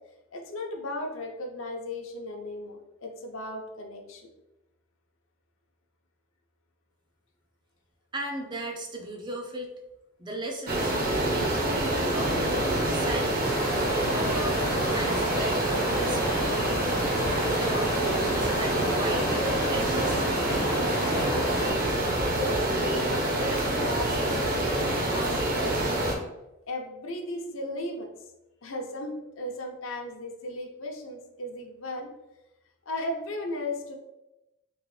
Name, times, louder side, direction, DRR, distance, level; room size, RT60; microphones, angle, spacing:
voice 1, 0.3-4.3 22.2-26.0 26.7-28.1 28.6-32.1 32.9-34.0, left 1 dB, 65° left, 2 dB, 0.6 m, -36 dB
voice 2, 8.1-9.7 10.2-11.6 12.0-13.6 14.1-16.6 17.3-19.4 19.7-20.3, right 1 dB, 20° right, 2 dB, 0.4 m, -36 dB
sound 1, 10.7-26.1, right 1 dB, 40° right, 0.7 m, -26 dB
sound 2, 13.4-21.7, left 1 dB, 85° left, 1.0 m, -33 dB
3.8 x 2.9 x 3.1 m, 0.95 s
head